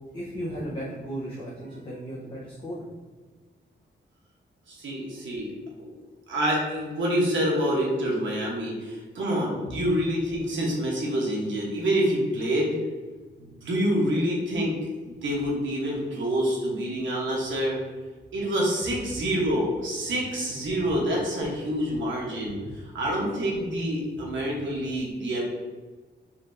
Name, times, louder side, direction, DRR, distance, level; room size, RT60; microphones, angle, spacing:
voice 1, 0.1-2.9 22.4-23.0, equal, 25° left, -8 dB, 0.8 m, -36 dB
voice 2, 4.7-5.5 5.8-6.0 6.3-12.7 13.4-14.7 15.0-17.8 18.3-25.4, equal, 75° right, -3 dB, 1.1 m, -27 dB
4.3 x 3.2 x 2.6 m, 1.4 s
wide cardioid pair, 150°, 20 cm